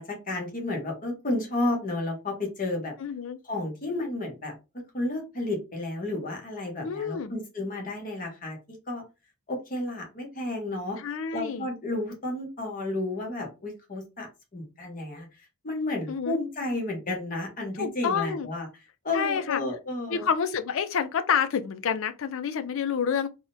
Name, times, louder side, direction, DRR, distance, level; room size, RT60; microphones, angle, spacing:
voice 1, 0.0-2.9 3.4-8.6 8.9-9.0 9.5-18.7 19.0-20.3, left 2 dB, 40° left, 0.9 m, -32 dB
voice 2, 3.0-3.4 6.8-7.3 11.0-11.7 16.1-16.4 17.8-18.5 19.1-19.6 20.1-23.3, left 6 dB, 65° left, 0.4 m, -28 dB
3.5 x 2.1 x 2.6 m
head